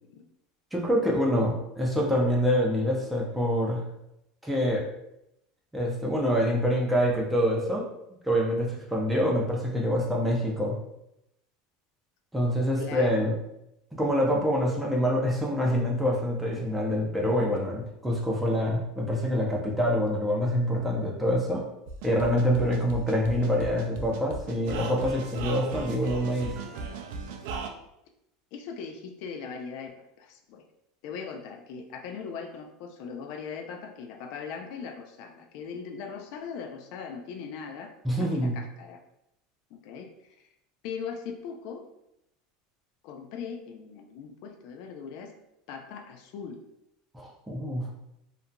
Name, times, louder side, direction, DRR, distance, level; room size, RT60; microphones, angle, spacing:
voice 1, 0.7-3.8 4.4-4.8 5.7-7.8 8.2-10.8 12.3-13.3 13.9-21.6 22.0-26.5 38.0-38.5 47.1-47.9, equal, 5° right, -2 dB, 0.6 m, -26 dB
voice 2, 12.8-13.3 28.5-30.6 31.0-39.0 39.7-40.1 40.4-40.5 40.8-41.8 43.0-45.3 45.7-46.6, left 6 dB, 60° left, 4 dB, 0.3 m, -40 dB
sound 1, 21.9-27.7, right 4 dB, 70° right, 0.3 m, -37 dB
2.8 x 2.5 x 2.2 m, 0.82 s
supercardioid pair, 145°, 0 cm